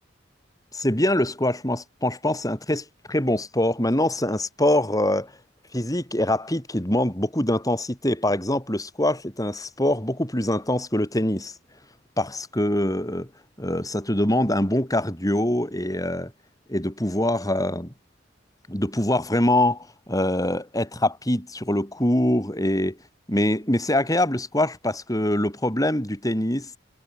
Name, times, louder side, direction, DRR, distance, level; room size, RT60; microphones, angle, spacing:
voice 1, 0.7-5.3 5.7-11.5 12.2-13.3 13.6-16.3 16.7-17.9 18.7-23.0 23.3-26.8, left 1 dB, 20° left, 7.6 m, -24 dB
head